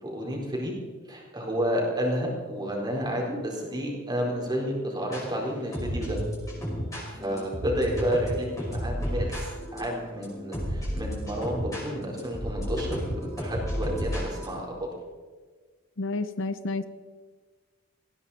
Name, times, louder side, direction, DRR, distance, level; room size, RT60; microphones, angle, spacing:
voice 1, 0.0-0.7 1.1-6.2 7.1-14.7, equal, 20° right, -2 dB, 4.3 m, -30 dB
sound 1, 2.5-5.2 5.7-14.5, equal, 15° left, 5.8 m, -33 dB
voice 2, 16.0-16.9, left 3 dB, 65° left, 12 dB, 0.7 m, -30 dB
19.0 x 16.0 x 4.3 m, 1.5 s
head